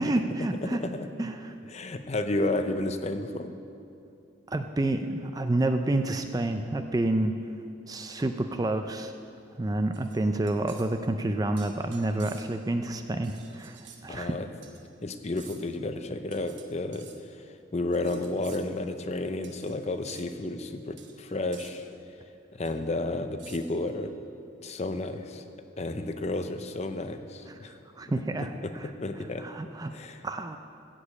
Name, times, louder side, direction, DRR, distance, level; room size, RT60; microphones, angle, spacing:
voice 1, 0.0-0.8 1.2-1.6 4.5-7.3 7.9-9.1 9.6-13.8 14.0-14.4 27.5-28.9 29.4-29.9 30.2-30.6, right 2 dB, 20° right, 7 dB, 0.3 m, -29 dB
voice 2, 0.6-1.3 1.7-3.5 14.1-14.5 15.0-21.9 22.5-24.1 24.6-25.4 25.8-27.8 28.4-28.7 29.0-29.5 29.9-30.2, left 2 dB, 30° left, 8 dB, 0.5 m, -32 dB
sound 1, 9.9-11.0 11.6-12.7 13.2-14.0 14.6-14.8 15.4-15.8 16.3-17.2 17.9-18.7 19.4-19.8 20.1-20.3 21.0-21.1 21.5-21.8 22.6-22.7 23.4-23.9, right 8 dB, 55° right, 1.0 m, -51 dB
14.5 x 5.0 x 8.5 m, 2.5 s
head